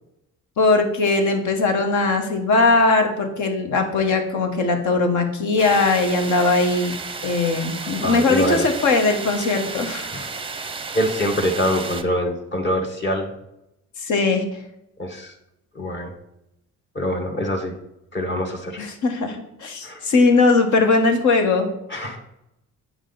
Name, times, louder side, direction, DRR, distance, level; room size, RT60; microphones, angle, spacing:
voice 1, 0.6-6.9 7.2-10.1 14.0-14.4 18.8-21.7, left 3 dB, 75° left, 5 dB, 1.3 m, -19 dB
sound 1, 5.6-12.0, right 4 dB, 20° right, 0.5 m, -33 dB
voice 2, 8.0-8.6 10.1-10.3 10.9-13.3 15.0-15.3 15.7-16.1 16.9-17.7 18.1-18.8 19.8-20.0 21.9-22.2, equal, 40° left, 2 dB, 1.4 m, -24 dB
8.0 x 5.0 x 3.9 m, 0.85 s
cardioid pair, 90°, 30 cm